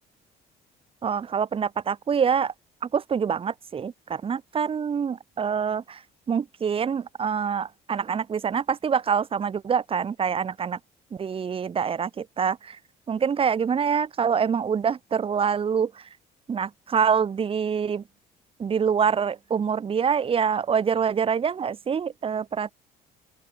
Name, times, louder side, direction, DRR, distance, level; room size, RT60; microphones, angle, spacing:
voice 1, 1.0-2.5 2.9-6.0 6.3-10.8 11.1-12.8 13.1-16.0 16.5-18.0 18.6-22.7, right 7 dB, 35° right, 1.2 m, -25 dB
open air
cardioid pair, 110°, 17 cm